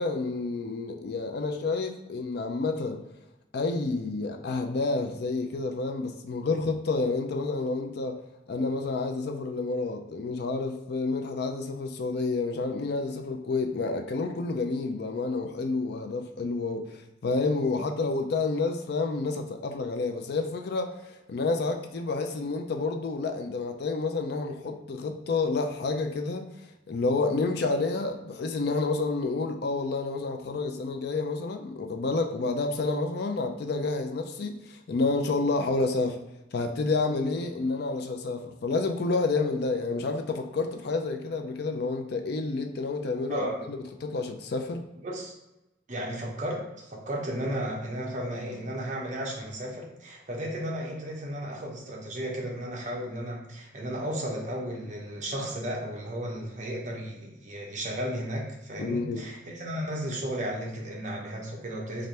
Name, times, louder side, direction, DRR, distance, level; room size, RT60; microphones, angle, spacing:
voice 1, 0.0-3.0 3.5-8.2 8.5-20.9 21.3-26.5 26.9-36.2 36.5-44.8 58.8-59.2, left 3 dB, 55° left, 5 dB, 0.4 m, -29 dB
voice 2, 43.3-43.6 45.0-45.3 45.9-62.1, right 1 dB, 40° right, -1 dB, 0.8 m, -34 dB
3.3 x 2.5 x 4.1 m, 0.97 s
head